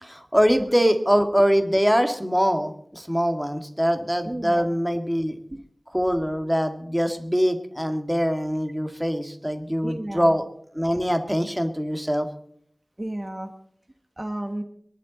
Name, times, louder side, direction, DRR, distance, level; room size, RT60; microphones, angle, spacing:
voice 1, 0.0-5.4 5.9-10.5 10.8-12.3, equal, 5° right, 7 dB, 1.9 m, -23 dB
voice 2, 4.2-4.6 5.5-5.6 9.8-10.3 13.0-13.5 14.2-14.6, right 1 dB, 35° right, 7 dB, 1.4 m, -32 dB
23.5 x 11.5 x 4.0 m, 0.65 s
wide cardioid pair, 50°, 0 cm